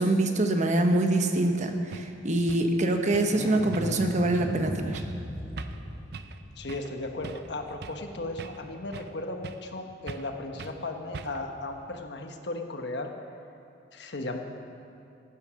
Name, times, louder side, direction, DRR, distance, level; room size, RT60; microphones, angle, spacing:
voice 1, 0.0-5.0, right 2 dB, 40° right, 5 dB, 1.0 m, -25 dB
sound 1, 1.5-1.6 1.9-2.1 2.5-2.7 3.1-3.4 3.7-4.1 4.3-4.6 4.9-5.2 5.6-5.8 6.1-6.4 6.7-6.9 7.2-8.1 8.4-9.2 9.4-9.7 10.1-10.3 10.6-10.8 11.1-11.5, right 4 dB, 60° right, 0.6 m, -42 dB
sound 2, 3.2-8.6 11.7-11.8, equal, 30° left, 2.3 m, -39 dB
voice 2, 6.6-13.1 13.9-14.4, left 2 dB, 65° left, 4 dB, 1.2 m, -36 dB
14.5 x 8.8 x 6.3 m, 2.6 s
head